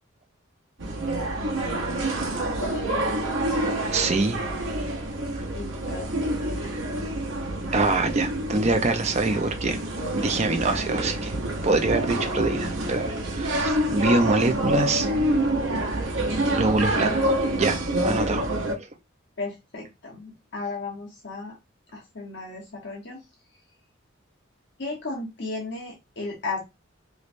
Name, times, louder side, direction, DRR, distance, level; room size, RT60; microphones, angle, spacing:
sound 1, 0.8-18.8, right 1 dB, 65° right, 0.9 m, -27 dB
voice 1, 1.4-2.3 2.6-3.1 5.5-6.7 16.4-16.6 19.4-21.6 21.9-23.2 24.8-26.6, left 3 dB, 60° left, 1.0 m, -35 dB
voice 2, 3.9-4.4 5.3-5.4 7.7-9.8 10.1-11.3 11.6-15.1 16.5-18.5 18.8-18.9, right 3 dB, 35° right, 0.6 m, -25 dB
3.2 x 3.1 x 2.6 m
head